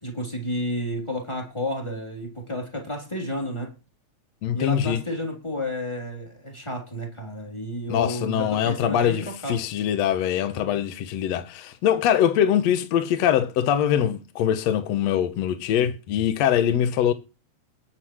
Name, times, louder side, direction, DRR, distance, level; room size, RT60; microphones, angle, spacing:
voice 1, 0.0-3.7 4.5-9.6, left 1 dB, 10° left, 3.4 m, -31 dB
voice 2, 4.4-5.0 7.9-9.2 9.5-17.1, left 10 dB, 70° left, 2.1 m, -23 dB
20.5 x 8.0 x 3.2 m
omnidirectional pair, 3.4 m